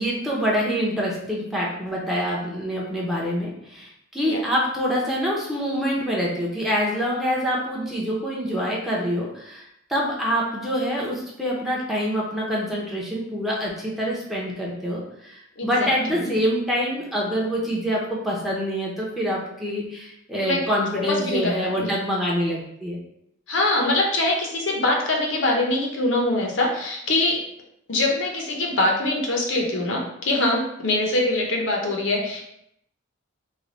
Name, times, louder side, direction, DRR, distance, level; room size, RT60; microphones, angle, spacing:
voice 1, 0.0-23.0, equal, ahead, -4 dB, 0.6 m, -26 dB
voice 2, 15.6-16.3 20.4-20.6 21.1-21.9 23.5-27.4 27.9-32.4, left 2 dB, 65° left, 0 dB, 0.7 m, -23 dB
3.2 x 2.2 x 3.8 m, 0.76 s
head